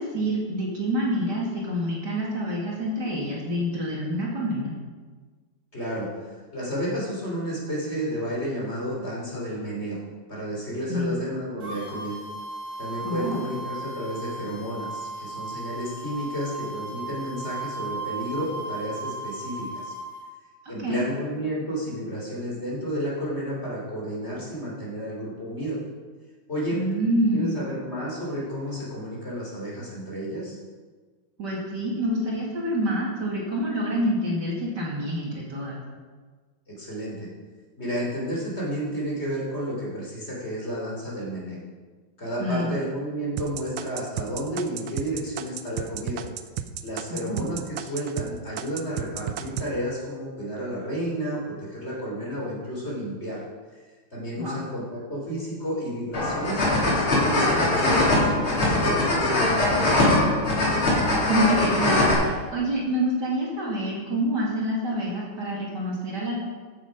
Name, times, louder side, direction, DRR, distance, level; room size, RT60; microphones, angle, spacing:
voice 1, 0.0-4.7 10.9-11.1 13.0-13.4 20.8-21.0 26.7-27.7 31.4-35.8 42.4-42.7 47.1-47.5 54.4-54.6 61.3-66.4, equal, 50° right, -3 dB, 2.7 m, -27 dB
voice 2, 5.7-10.0 10.3-12.2 12.8-19.9 20.7-25.8 26.5-26.8 27.3-30.6 36.7-37.3 37.8-41.6 42.2-46.2 46.8-53.4 53.7-53.8 54.1-60.2, equal, 30° left, -4 dB, 3.6 m, -31 dB
sound 1, 11.6-20.2, right 2 dB, 20° right, 3.4 m, -36 dB
sound 2, 43.4-48.3 48.6-49.7, right 10 dB, 80° right, 1.5 m, -32 dB
sound 3, 56.1-62.1, left 1 dB, 75° left, 4.0 m, -21 dB
14.5 x 7.9 x 5.2 m, 1.4 s
omnidirectional pair, 2.4 m